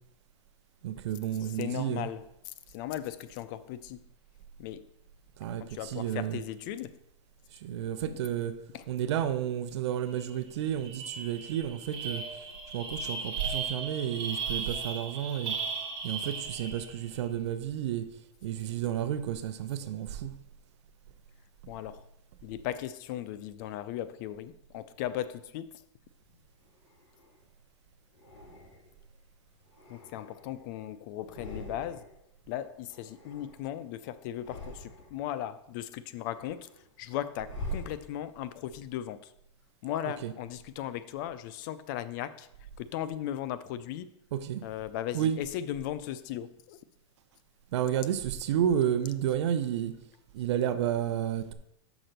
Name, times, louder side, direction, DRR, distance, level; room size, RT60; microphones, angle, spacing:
voice 1, 0.8-2.1 5.4-6.4 7.5-12.3 12.7-15.6 16.0-18.1 18.4-20.4 40.2-40.3 44.3-44.6 45.1-45.4 47.7-49.9 50.3-51.5, right 10 dB, 65° right, 0.7 m, -31 dB
voice 2, 1.4-4.0 4.6-4.8 5.7-6.9 8.0-8.2 8.7-8.8 14.6-14.8 21.7-22.0 22.4-25.7 29.9-32.1 32.5-36.7 37.0-39.3 39.8-42.5 42.8-44.1 44.6-46.8, left 12 dB, 40° left, 0.4 m, -37 dB
sound 1, 10.2-10.3 10.6-17.0, right 5 dB, 30° right, 2.0 m, -37 dB
sound 2, 26.2-27.5 28.1-29.1 29.5-30.8 31.1-32.2 32.5-33.9 34.3-35.3 35.8-38.5, left 2 dB, 85° left, 2.8 m, -47 dB
6.0 x 5.0 x 6.5 m
supercardioid pair, 150°, 16 cm